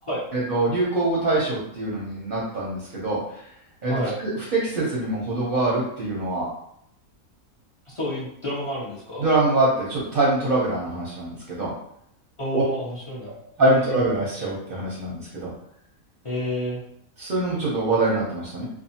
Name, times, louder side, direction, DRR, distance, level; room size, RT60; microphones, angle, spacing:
voice 1, 0.3-3.2 3.8-6.5 9.2-11.7 12.5-12.6 13.6-15.5 17.2-18.6, right 2 dB, 50° right, -5 dB, 0.6 m, -24 dB
voice 2, 3.8-4.2 7.9-9.3 12.4-14.0 16.2-16.8, left 1 dB, 40° left, -7 dB, 0.4 m, -30 dB
2.5 x 2.4 x 2.7 m, 0.72 s
omnidirectional pair, 1.5 m